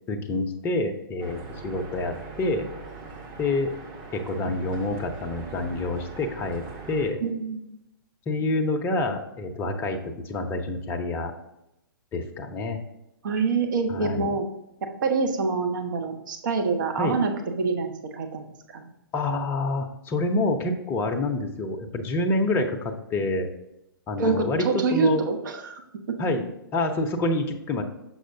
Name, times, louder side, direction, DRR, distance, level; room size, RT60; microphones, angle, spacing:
voice 1, 0.1-2.7 3.4-3.7 4.1-7.2 8.3-11.3 12.1-12.8 13.9-14.4 17.0-17.2 19.1-23.5 24.1-24.7 24.9-25.2 26.2-26.4 26.7-27.8, left 2 dB, 20° left, 5 dB, 0.6 m, -27 dB
sound 1, 1.2-7.1, right 4 dB, 30° right, 1.1 m, -41 dB
voice 2, 7.2-7.6 13.2-14.5 14.8-17.3 17.6-18.9 24.2-25.8 26.1-26.2, right 4 dB, 55° right, 5 dB, 0.9 m, -26 dB
6.3 x 6.1 x 2.7 m, 0.88 s
figure-of-eight pair, 120°, 12 cm